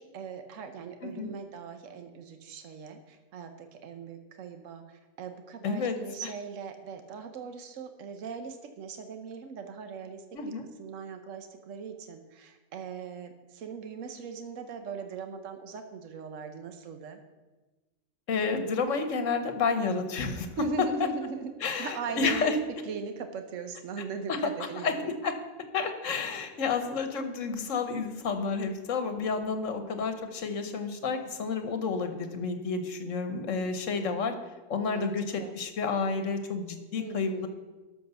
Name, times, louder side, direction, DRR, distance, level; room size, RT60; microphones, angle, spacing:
voice 1, 0.0-10.2 10.8-17.2 20.6-21.5 21.8-22.5 22.8-25.0 34.9-35.5 37.0-37.5, right 5 dB, 75° right, 7 dB, 1.2 m, -39 dB
voice 2, 5.6-6.0 6.2-6.3 10.3-10.6 18.3-20.5 21.6-22.6 24.3-24.4 24.8-25.4 25.7-34.3 34.7-37.5, left 4 dB, 75° left, 8 dB, 1.4 m, -30 dB
12.5 x 5.2 x 6.9 m, 1.2 s
omnidirectional pair, 1.3 m